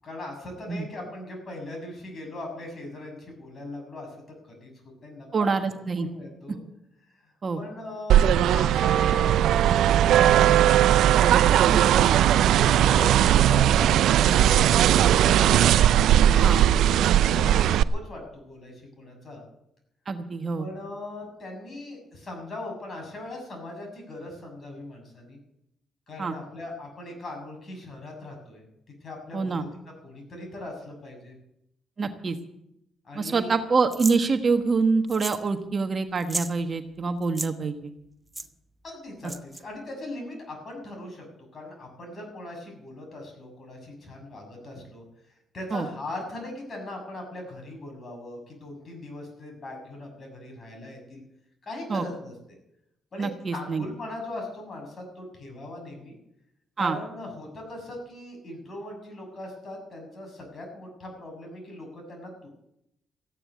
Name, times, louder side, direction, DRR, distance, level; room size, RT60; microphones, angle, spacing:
voice 1, 0.0-4.1 4.5-4.7 5.0-5.5 6.0-6.6 7.2-10.7 11.6-12.3 12.5-15.7 16.0-19.5 20.6-25.4 26.1-28.6 29.0-29.7 30.0-31.3 33.0-33.6 38.8-41.2 41.5-45.0 45.5-51.2 51.6-52.3 53.1-56.2 56.8-62.5, left 1 dB, 40° left, 2 dB, 6.9 m, -39 dB
voice 2, 5.3-6.1 7.4-7.6 11.6-11.9 16.4-16.6 20.1-20.7 26.2-26.3 29.3-29.6 32.0-32.4 33.1-37.9 45.7-45.9 51.9-52.0 53.2-53.8 56.8-57.0, right 4 dB, 40° right, 7 dB, 1.2 m, -26 dB
sound 1, 8.1-17.8, right 11 dB, 80° right, 0.5 m, -19 dB
sound 2, 33.9-34.2 35.1-35.5 35.7-35.8 36.2-36.5 37.2-37.5 38.3-38.5 39.2-39.6, right 2 dB, 15° right, 1.0 m, -33 dB
15.0 x 10.0 x 8.2 m, 0.80 s
cardioid pair, 90°, 0 cm